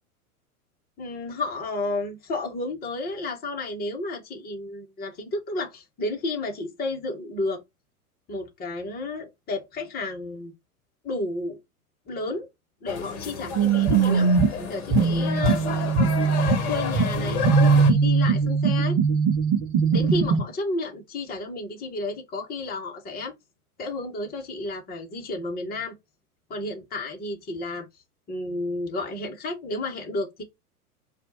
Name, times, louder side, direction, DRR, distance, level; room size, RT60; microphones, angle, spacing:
voice 1, 1.0-7.6 8.3-10.5 11.0-11.6 12.1-12.5 12.8-14.3 14.7-15.6 16.7-17.4 17.7-19.0 19.9-23.3 23.8-25.9 26.5-27.9 28.3-30.4, left 2 dB, 20° left, 1.3 m, -32 dB
sound 1, 12.9-17.9, left 7 dB, 45° left, 1.2 m, -31 dB
sound 2, 13.6-20.4, right 5 dB, 30° right, 0.9 m, -21 dB
4.2 x 2.6 x 3.9 m
figure-of-eight pair, 95°, 45 cm